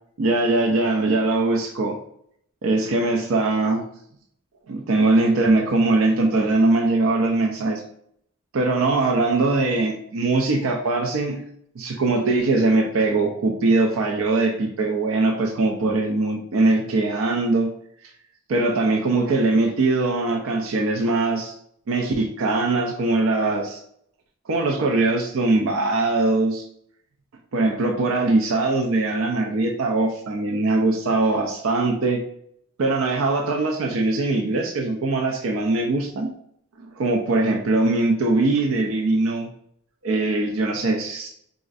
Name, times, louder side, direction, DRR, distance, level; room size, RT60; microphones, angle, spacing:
voice 1, 0.2-2.0 2.6-3.8 4.7-7.8 8.5-11.4 11.8-17.7 18.5-21.5 21.9-23.8 24.5-26.6 27.5-32.2 32.8-36.3 37.0-39.5 40.0-41.3, right 2 dB, 85° right, 2 dB, 0.4 m, -21 dB
4.0 x 2.4 x 2.5 m, 0.69 s
head